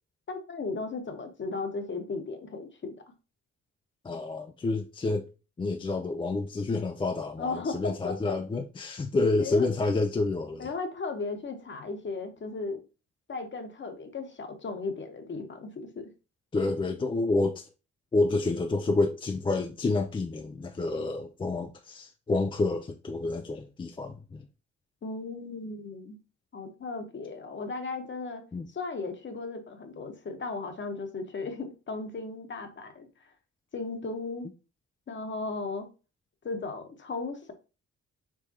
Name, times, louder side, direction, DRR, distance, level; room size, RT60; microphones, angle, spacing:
voice 1, 0.3-2.9 7.4-8.4 9.4-9.7 10.6-12.8 13.3-16.1 25.0-26.2 26.5-28.4 28.7-33.1 33.7-34.5 35.1-35.9 36.4-37.5, left 3 dB, 40° left, 1.0 m, -36 dB
voice 2, 4.0-5.3 5.6-10.7 16.5-17.6 18.1-24.4 28.5-28.7, left 3 dB, 15° left, 0.3 m, -29 dB
4.7 x 3.5 x 2.8 m
cardioid pair, 95°, 31 cm